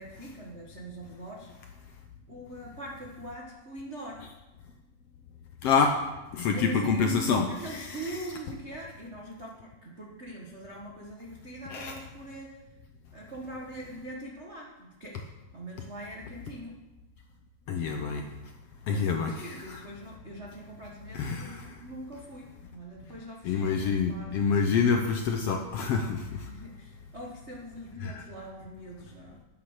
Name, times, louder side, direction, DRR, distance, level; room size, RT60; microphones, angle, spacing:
voice 1, 0.0-1.5 2.3-4.2 6.5-12.6 13.1-16.8 18.9-24.3 26.3-29.4, right 1 dB, 60° right, -2 dB, 0.6 m, -42 dB
voice 2, 6.3-7.9 11.7-11.9 17.7-18.3 18.9-19.8 21.1-21.7 23.4-26.3 28.0-28.2, left 5 dB, 70° left, 4 dB, 1.5 m, -27 dB
9.7 x 9.0 x 6.4 m, 1.1 s
omnidirectional pair, 3.6 m